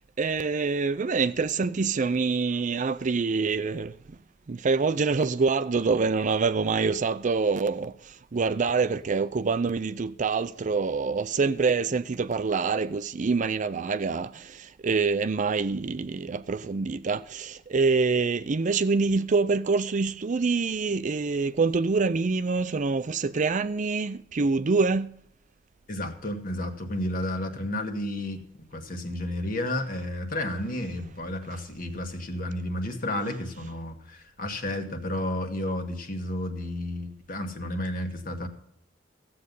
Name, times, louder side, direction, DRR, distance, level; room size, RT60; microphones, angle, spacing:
voice 1, 0.2-4.2 4.5-25.2, right 4 dB, 40° right, 0.5 m, -26 dB
voice 2, 25.9-38.5, left 1 dB, 50° left, 1.7 m, -32 dB
15.0 x 7.7 x 5.4 m
head